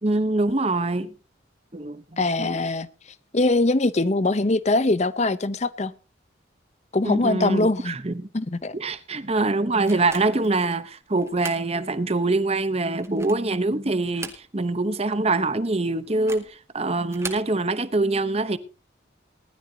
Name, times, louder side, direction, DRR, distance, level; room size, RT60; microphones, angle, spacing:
voice 1, 0.0-1.1 1.7-2.6 7.0-8.3 8.7-18.6, right 2 dB, 30° right, 0.9 m, -24 dB
voice 2, 2.2-2.9 3.3-5.9 6.9-7.9 8.3-8.7, left 2 dB, 35° left, 0.7 m, -22 dB
sound 1, 9.9-10.5 11.2-11.7 12.1-12.2 12.9-13.5 14.0-14.8 15.1-15.2 16.1-16.5 17.0-17.5, right 4 dB, 15° right, 2.1 m, -39 dB
20.0 x 12.5 x 2.8 m
head